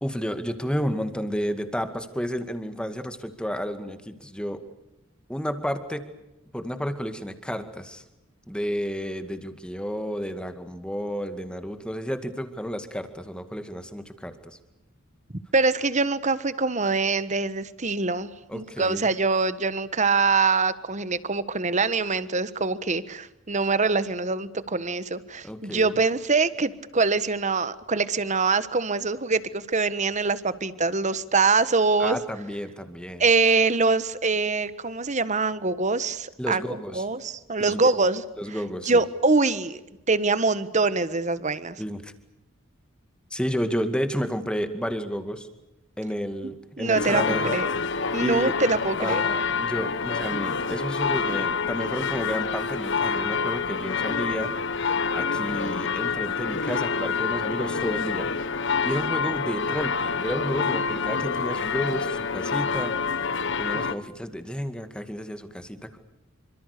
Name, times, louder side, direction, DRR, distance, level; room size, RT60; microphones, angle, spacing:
voice 1, 0.0-4.6 5.3-6.1 6.5-8.0 8.5-14.6 18.5-19.1 25.4-25.9 32.0-33.2 36.4-37.0 37.7-37.9 38.4-39.0 41.8-42.1 43.3-45.5 46.0-47.6 48.2-48.6 49.0-54.5 55.1-58.3 58.7-66.0, equal, 5° left, 9 dB, 2.2 m, -31 dB
voice 2, 15.5-32.2 33.2-36.6 36.9-38.2 38.9-39.8 40.1-41.8 46.8-47.2 47.5-47.7 48.1-49.2, right 4 dB, 35° right, 15 dB, 1.4 m, -24 dB
sound 1, 46.9-63.9, left 5 dB, 60° left, 1.4 m, -27 dB
28.0 x 26.0 x 6.9 m, 0.92 s
head